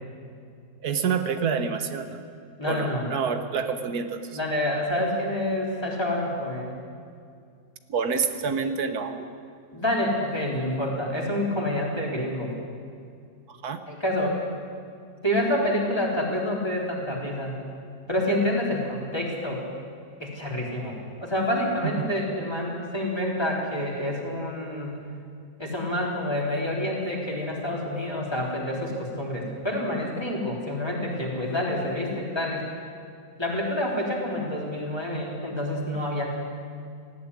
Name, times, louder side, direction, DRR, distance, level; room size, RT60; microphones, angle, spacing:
voice 1, 0.8-2.2 2.7-4.3 7.9-9.3 13.5-13.8 21.8-22.1, right 6 dB, 90° right, 8 dB, 1.7 m, -28 dB
voice 2, 2.6-3.1 4.3-6.7 9.7-12.5 13.9-14.4 15.2-17.6 18.1-19.6 20.2-25.0 25.6-32.7 33.4-36.4, left 1 dB, 15° left, -3 dB, 3.9 m, -28 dB
18.0 x 15.5 x 9.8 m, 2.3 s
omnidirectional pair, 1.6 m